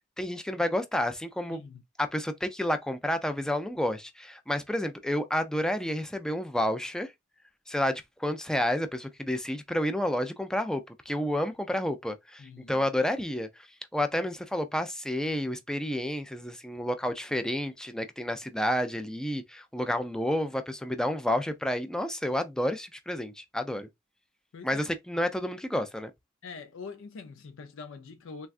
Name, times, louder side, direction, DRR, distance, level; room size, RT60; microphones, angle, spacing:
voice 1, 0.2-1.6 2.0-7.1 7.7-13.7 13.9-23.9 24.6-26.1, left 1 dB, 5° left, 0.3 m, -30 dB
voice 2, 1.5-1.8 12.4-12.9 24.5-24.9 26.4-28.5, left 4 dB, 70° left, 0.5 m, -44 dB
3.5 x 2.2 x 2.4 m
head